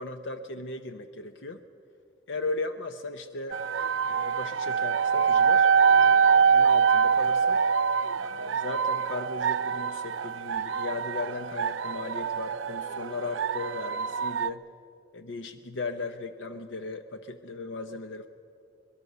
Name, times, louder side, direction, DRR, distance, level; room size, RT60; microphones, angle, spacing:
voice 1, 0.0-1.6 2.3-3.6 4.0-7.6 8.2-14.6 15.1-18.3, left 3 dB, 65° left, 9 dB, 0.8 m, -37 dB
sound 1, 3.5-14.5, right 6 dB, 80° right, 0.5 m, -24 dB
22.0 x 22.0 x 6.7 m, 2.5 s
head